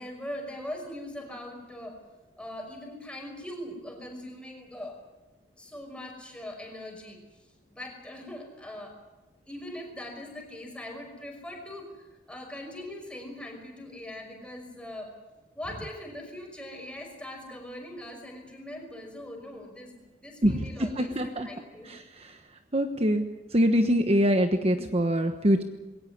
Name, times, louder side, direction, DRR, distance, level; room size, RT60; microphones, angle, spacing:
voice 1, 0.0-2.0 2.4-5.0 5.6-7.2 7.7-9.0 9.5-15.1 15.6-21.9, left 1 dB, 5° left, 2 dB, 5.6 m, -41 dB
voice 2, 20.4-21.5 21.9-22.3 22.7-23.3 23.5-25.6, equal, 35° right, 6 dB, 1.2 m, -24 dB
21.5 x 18.0 x 9.8 m, 1.1 s
head